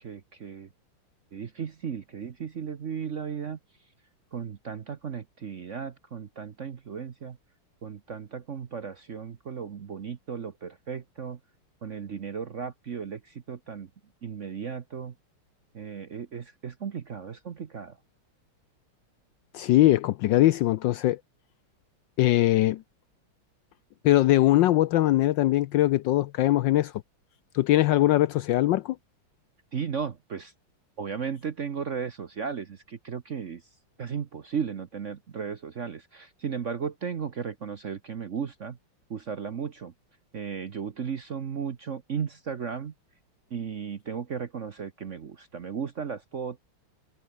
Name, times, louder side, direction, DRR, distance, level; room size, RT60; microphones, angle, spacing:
voice 1, 0.0-0.7 1.3-3.6 4.3-7.4 7.8-11.4 11.8-13.9 14.2-15.1 15.7-18.0 29.7-30.5 31.0-33.6 34.0-38.8 39.1-39.9 40.3-42.9 43.5-46.6, right 6 dB, 50° right, 1.0 m, -35 dB
voice 2, 19.5-21.2 22.2-22.8 24.0-26.9 27.5-29.0, left 15 dB, 75° left, 1.1 m, -21 dB
omnidirectional pair, 2.4 m